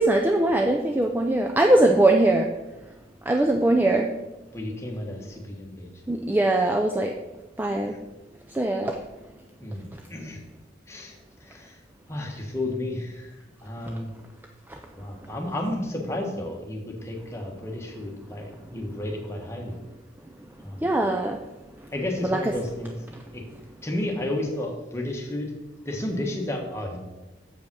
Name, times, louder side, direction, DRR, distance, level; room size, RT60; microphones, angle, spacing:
voice 1, 0.0-2.5 3.3-4.1 6.1-7.1 7.6-7.9 8.6-9.0 20.8-21.4 22.2-22.5, right 1 dB, 10° right, 3 dB, 0.4 m, -21 dB
voice 2, 4.5-5.9 7.8-8.0 9.6-10.4 10.9-11.8 12.1-14.1 15.0-19.7 20.6-21.0 21.9-23.0 23.3-23.4 23.8-25.5 25.8-27.0, left 1 dB, 15° left, 0 dB, 1.4 m, -32 dB
7.1 x 5.2 x 6.2 m, 1.1 s
head